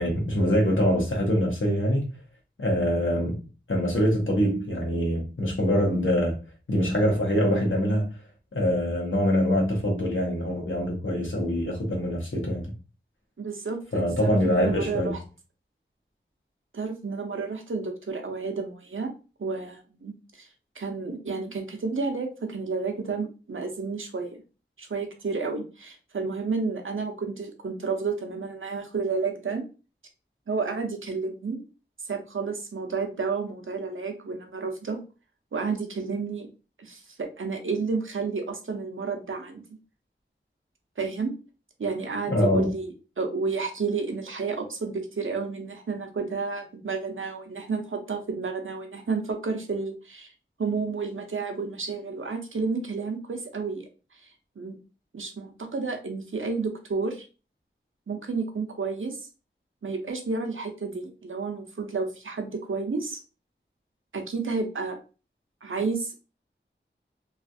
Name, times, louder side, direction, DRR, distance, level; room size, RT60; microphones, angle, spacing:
voice 1, 0.0-2.0 2.6-3.4 3.7-6.4 6.7-8.2 8.5-12.7 13.9-15.2 42.3-42.7, equal, 80° left, 1.0 m, -24 dB
voice 2, 13.4-15.2 16.7-19.1 19.4-20.5 20.8-24.4 24.8-29.6 30.5-31.6 32.1-35.0 35.5-36.5 36.8-39.6 41.0-41.3 41.8-42.9 43.2-50.3 50.6-53.9 54.6-54.7 55.1-57.3 58.1-59.3 59.8-63.2 64.1-65.0 65.6-66.2, right 4 dB, 80° right, 0.6 m, -31 dB
3.2 x 2.4 x 2.6 m
wide cardioid pair, 50°, 20 cm